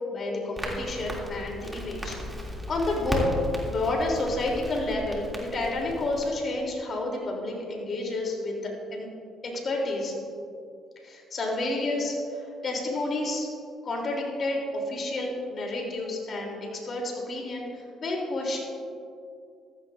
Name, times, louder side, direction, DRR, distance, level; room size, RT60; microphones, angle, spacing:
voice 1, 0.1-2.2 2.4-3.3 3.6-9.1 9.4-10.1 11.0-13.5 13.8-18.6, left 2 dB, 45° left, -1 dB, 3.4 m, -30 dB
Crackle, 0.6-6.3, equal, 10° right, 2.7 m, -35 dB
15.0 x 13.5 x 2.7 m, 2.4 s
cardioid pair, 85°, 0 cm